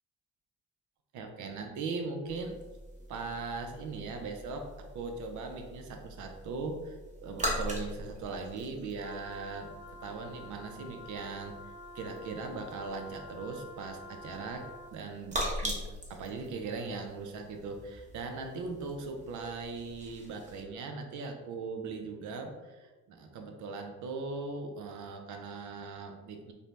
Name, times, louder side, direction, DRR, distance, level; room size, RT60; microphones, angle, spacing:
voice 1, 1.1-2.5 3.1-11.5 11.9-15.8 16.1-26.5, right 4 dB, 75° right, 4 dB, 0.5 m, -39 dB
sound 1, 2.3-20.6, equal, 25° right, 0.8 m, -42 dB
Wind instrument woodwind instrument, 9.0-15.0, left 2 dB, 50° left, 0.9 m, -49 dB
2.6 x 2.1 x 3.0 m, 1.3 s
cardioid pair, 90°, 30 cm